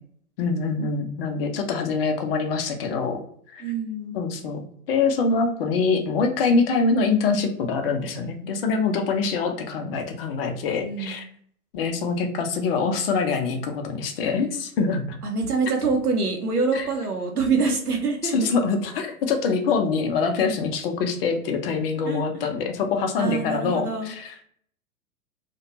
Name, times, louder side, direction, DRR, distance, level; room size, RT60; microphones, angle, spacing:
voice 1, 0.4-3.2 3.5-3.7 4.1-11.2 11.7-15.2 16.7-16.9 18.2-24.5, left 4 dB, 40° left, 5 dB, 0.5 m, -24 dB
voice 2, 3.6-4.2 10.8-11.2 15.2-18.3 22.0-22.5 23.2-24.1, right 4 dB, 90° right, 2 dB, 0.8 m, -25 dB
2.4 x 2.2 x 2.8 m, 0.63 s
figure-of-eight pair, 100°, 44 cm